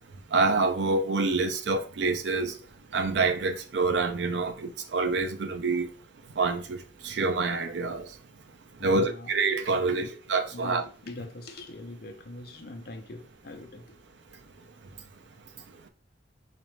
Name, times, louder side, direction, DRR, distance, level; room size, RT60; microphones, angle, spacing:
voice 1, 0.3-2.6 2.9-5.9 6.4-8.1 8.8-10.8, right 3 dB, 70° right, 0.5 m, -27 dB
voice 2, 8.8-9.3 9.8-10.1 10.5-14.0, left 1 dB, 55° left, 0.6 m, -42 dB
4.1 x 2.5 x 3.2 m
head